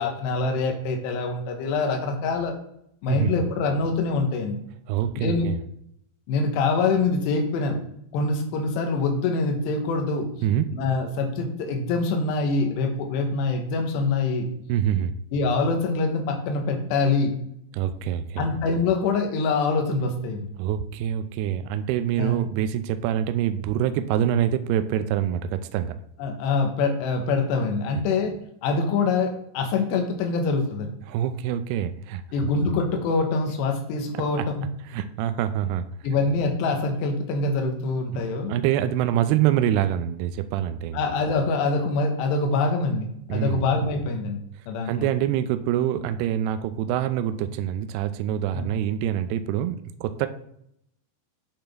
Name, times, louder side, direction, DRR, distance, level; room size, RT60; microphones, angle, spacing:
voice 1, 0.0-2.5 3.0-4.6 5.2-5.5 6.3-7.8 8.1-10.3 10.7-14.5 15.3-17.3 18.4-20.5 22.2-22.4 26.2-28.4 28.6-30.9 32.3-34.7 36.0-38.5 40.9-45.1 48.5-48.7, left 3 dB, 80° left, 3 dB, 3.1 m, -25 dB
voice 2, 4.9-5.6 10.4-10.7 14.7-15.1 17.7-18.5 20.6-25.9 27.9-28.0 31.1-32.2 34.4-34.5 34.9-35.9 38.1-38.2 38.5-41.0 43.3-43.6 44.9-50.3, right 10 dB, 85° right, 10 dB, 2.2 m, -25 dB
8.8 x 5.9 x 3.4 m, 0.73 s
omnidirectional pair, 5.0 m